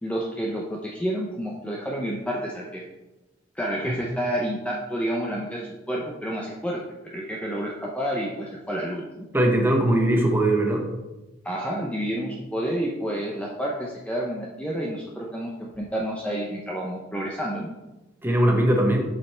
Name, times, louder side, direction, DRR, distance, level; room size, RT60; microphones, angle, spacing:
voice 1, 0.0-2.8 3.5-9.3 11.4-17.7, equal, 5° left, -3 dB, 0.8 m, -29 dB
voice 2, 9.3-10.8 18.2-19.0, right 1 dB, 10° right, 0 dB, 1.3 m, -20 dB
7.5 x 5.5 x 4.4 m, 1.1 s
head